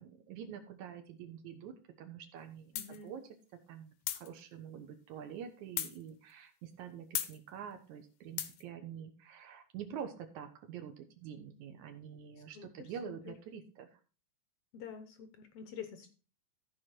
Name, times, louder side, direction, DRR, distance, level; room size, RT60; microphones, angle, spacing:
voice 1, 0.0-3.2 3.7-14.0, right 8 dB, 70° right, 6 dB, 2.2 m, -47 dB
voice 2, 2.7-3.1 12.5-13.3 14.7-16.1, left 7 dB, 70° left, 8 dB, 1.5 m, -47 dB
sound 1, 2.8-3.0 4.1-4.3 5.8-6.0 7.2-7.4 8.4-8.6, left 12 dB, 85° left, 2.5 m, -36 dB
14.5 x 4.8 x 4.4 m, 0.34 s
omnidirectional pair, 3.8 m